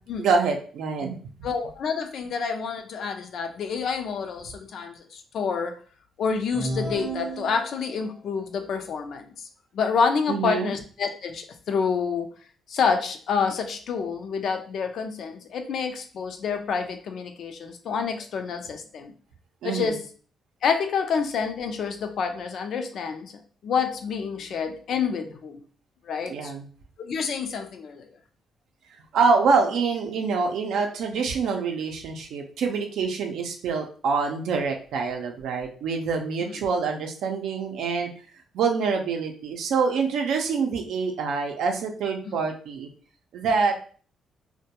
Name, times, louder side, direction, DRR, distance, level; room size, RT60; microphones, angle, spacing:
voice 1, 0.2-1.2 10.3-10.7 19.6-20.0 26.3-26.7 29.1-38.1 38.5-42.9 43.3-43.8, right 5 dB, 80° right, 3 dB, 0.5 m, -25 dB
voice 2, 1.4-5.7 6.2-9.5 9.7-12.3 12.7-19.1 19.6-20.0 20.6-23.3 23.6-25.6 26.0-26.5 27.0-28.1 36.4-36.5 42.3-42.4, left 5 dB, 65° left, 6 dB, 0.4 m, -28 dB
sound 1, 6.5-8.1, right 2 dB, 10° right, 0.6 m, -33 dB
2.2 x 2.2 x 2.8 m, 0.42 s
cardioid pair, 90°, 0 cm